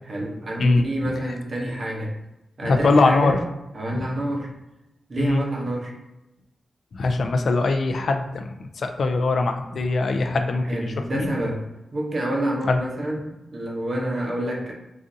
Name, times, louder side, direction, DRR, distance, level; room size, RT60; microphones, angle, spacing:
voice 1, 0.1-2.1 2.6-3.4 3.7-4.5 5.1-5.9 10.6-11.6 11.9-14.7, right 1 dB, 40° right, -1 dB, 0.7 m, -28 dB
voice 2, 2.6-3.4 5.2-5.4 6.9-8.5 8.8-11.3 12.7-12.8, left 3 dB, 60° left, 5 dB, 0.3 m, -21 dB
3.9 x 2.4 x 2.6 m, 0.96 s
wide cardioid pair, 125°, 0 cm